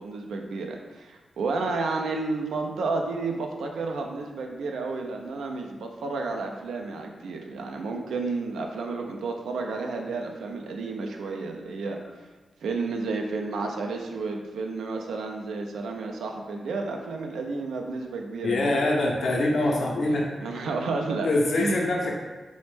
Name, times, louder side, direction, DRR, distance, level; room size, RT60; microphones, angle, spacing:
voice 1, 0.0-12.0 12.6-18.7 19.7-21.3 21.6-21.9, right 3 dB, 90° right, 2 dB, 0.3 m, -31 dB
voice 2, 18.4-20.3 21.2-22.2, left 2 dB, 70° left, -1 dB, 0.5 m, -24 dB
3.2 x 2.0 x 3.1 m, 1.2 s
cardioid pair, 55°, 0 cm